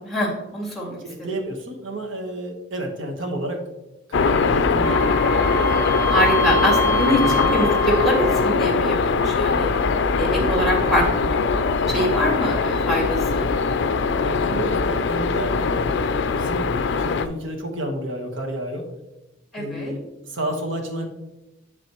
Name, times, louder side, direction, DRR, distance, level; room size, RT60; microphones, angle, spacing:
voice 1, 0.0-1.0 6.1-9.7 10.2-11.2 11.9-13.5 19.5-19.9, equal, ahead, -3 dB, 2.3 m, -23 dB
voice 2, 1.0-3.6 4.1-5.2 7.1-7.5 10.7-10.9 13.8-18.9 19.6-21.1, right 1 dB, 75° right, 2 dB, 1.3 m, -31 dB
sound 1, 4.1-17.3, left 4 dB, 65° left, 0.4 m, -21 dB
Wind instrument woodwind instrument, 4.8-8.7, left 1 dB, 20° left, 1.9 m, -26 dB
10.5 x 4.1 x 3.0 m, 0.99 s
head